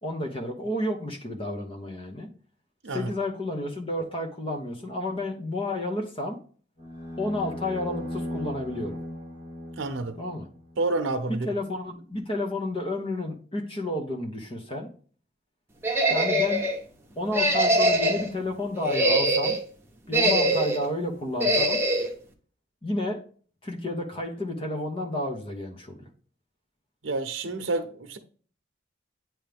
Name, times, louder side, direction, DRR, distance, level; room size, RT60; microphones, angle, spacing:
voice 1, 0.0-2.3 2.9-6.4 7.2-9.0 10.2-10.5 11.4-14.9 16.1-16.6 17.2-19.6 20.1-21.8 22.8-23.2 23.6-26.1, left 1 dB, 30° left, 0.9 m, -31 dB
sound 1, 6.8-11.1, left 1 dB, 45° left, 1.6 m, -37 dB
voice 2, 9.8-10.2 10.8-11.5 27.0-28.2, right 2 dB, 80° right, 0.8 m, -29 dB
sound 2, 15.8-16.8 17.3-18.3 18.8-19.6 20.1-20.9 21.4-22.1, right 1 dB, 10° right, 0.9 m, -23 dB
9.0 x 3.2 x 3.4 m
head